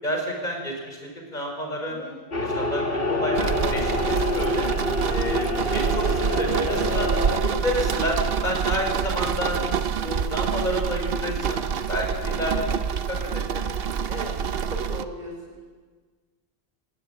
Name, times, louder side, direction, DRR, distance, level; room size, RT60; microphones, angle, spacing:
voice 1, 0.0-1.0 1.3-2.0 2.5-4.7 5.1-7.1 7.4-9.6 10.0-11.6 11.9-12.7 13.1-13.6, equal, 45° left, 1 dB, 5.6 m, -29 dB
sound 1, 2.3-7.4, left 1 dB, 65° left, 2.0 m, -26 dB
sound 2, 3.3-15.0, right 7 dB, 70° right, 1.0 m, -27 dB
voice 2, 14.7-15.6, right 1 dB, 45° right, -2 dB, 4.8 m, -37 dB
20.0 x 17.5 x 8.8 m, 1.5 s
omnidirectional pair, 1.0 m